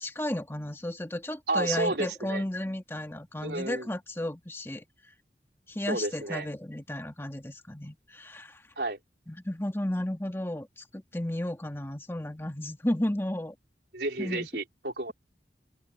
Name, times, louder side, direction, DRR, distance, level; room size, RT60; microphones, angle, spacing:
voice 1, 0.0-4.8 5.7-8.6 9.3-13.5 14.2-14.5, left 1 dB, 15° left, 1.9 m, -33 dB
voice 2, 1.5-2.4 3.4-3.9 5.9-6.5 8.8-9.0 13.9-15.1, right 2 dB, 70° right, 3.8 m, -31 dB
open air
head